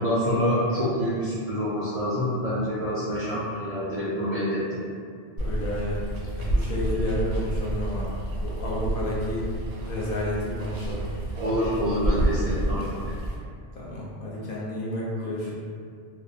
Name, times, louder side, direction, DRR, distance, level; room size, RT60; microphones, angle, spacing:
voice 1, 0.0-4.8 11.4-12.9, equal, 60° right, -10 dB, 0.4 m, -26 dB
voice 2, 5.4-6.0 6.4-8.1 8.4-9.4 9.8-11.0 12.1-12.7 13.3-13.4 13.7-15.5, left 1 dB, 60° left, -6 dB, 0.7 m, -31 dB
Water, 5.4-13.3, right 1 dB, 75° right, 0.9 m, -29 dB
2.3 x 2.1 x 2.6 m, 2.2 s
omnidirectional pair, 1.1 m